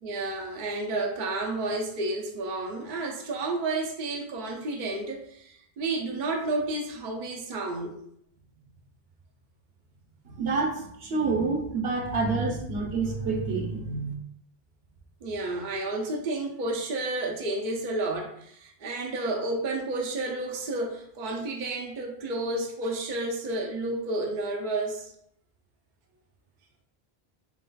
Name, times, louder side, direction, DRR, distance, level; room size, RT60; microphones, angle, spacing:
voice 1, 0.0-7.9 12.1-12.2 15.2-25.1, right 2 dB, 55° right, 0 dB, 0.7 m, -31 dB
voice 2, 10.2-14.1, right 4 dB, 75° right, 0 dB, 1.1 m, -28 dB
7.1 x 2.4 x 2.3 m, 0.71 s
omnidirectional pair, 1.0 m